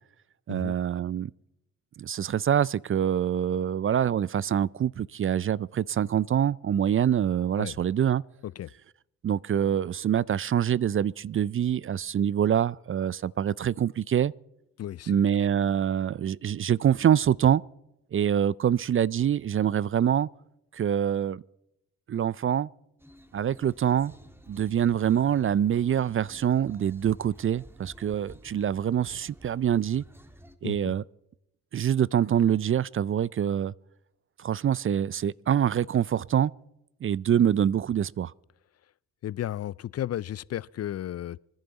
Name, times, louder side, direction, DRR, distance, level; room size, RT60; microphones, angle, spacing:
voice 1, 0.5-1.3 2.0-8.2 9.2-14.3 15.1-17.6 18.1-20.3 20.7-21.4 22.1-22.7 23.3-24.1 24.5-30.0 30.6-31.0 31.7-33.7 34.4-36.5 37.0-38.3, right 9 dB, 35° right, 0.4 m, -25 dB
voice 2, 14.8-15.2 30.6-30.9 39.2-41.4, left 12 dB, 45° left, 0.4 m, -34 dB
sound 1, 23.0-30.6, equal, 5° right, 1.7 m, -52 dB
25.5 x 10.5 x 4.0 m
hypercardioid pair, 45°, 36 cm